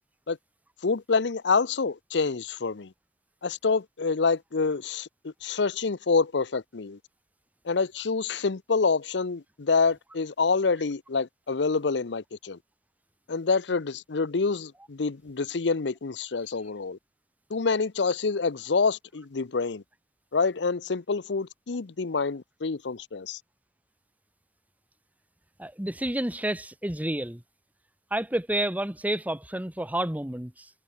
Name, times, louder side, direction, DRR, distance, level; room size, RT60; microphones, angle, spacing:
voice 1, 0.8-2.9 3.4-7.0 7.7-12.6 13.3-17.0 17.5-19.8 20.3-23.4, left 4 dB, 80° left, 0.7 m, -27 dB
voice 2, 25.6-27.4 28.1-30.7, right 1 dB, 10° right, 1.3 m, -30 dB
head